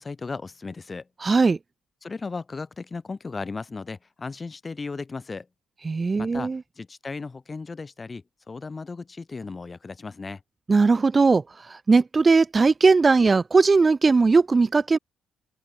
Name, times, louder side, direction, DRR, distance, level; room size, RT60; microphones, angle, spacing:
voice 1, 0.0-1.1 2.0-5.5 6.2-10.4, left 4 dB, 30° left, 7.5 m, -36 dB
voice 2, 1.2-1.6 5.8-6.6 10.7-15.0, right 4 dB, 30° right, 1.2 m, -19 dB
open air
cardioid pair, 90°, 0 cm